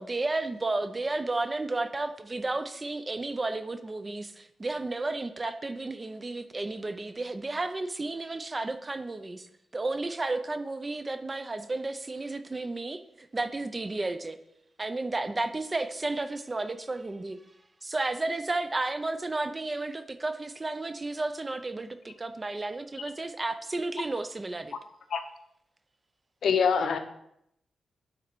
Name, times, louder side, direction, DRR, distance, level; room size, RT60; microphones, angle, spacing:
voice 1, 0.0-9.5 9.7-14.4 14.8-17.4 17.8-24.7, right 2 dB, 25° right, 10 dB, 0.5 m, -32 dB
voice 2, 26.4-27.0, left 6 dB, 75° left, 8 dB, 0.7 m, -24 dB
9.2 x 3.9 x 4.5 m, 0.77 s
cardioid pair, 100°, 0 cm